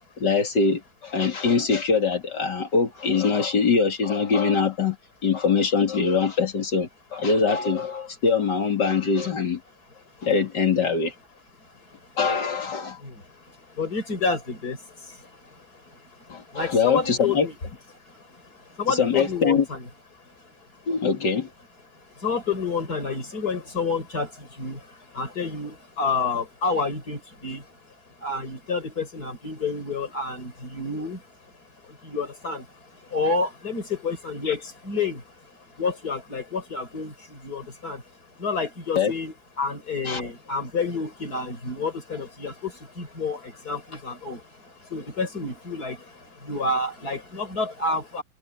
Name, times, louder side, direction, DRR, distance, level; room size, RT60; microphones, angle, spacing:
voice 1, 0.2-5.0 5.2-9.6 10.2-11.1 12.2-13.0 16.3-17.5 18.9-19.6 20.9-21.5 34.5-34.6 39.0-39.1 40.0-40.3, left 5 dB, 85° left, 3.2 m, -23 dB
voice 2, 11.6-12.1 13.0-17.6 18.1-19.9 20.2-20.6 22.1-31.3 31.8-38.0 38.3-48.2, left 4 dB, 65° left, 5.5 m, -30 dB
omnidirectional pair, 1.8 m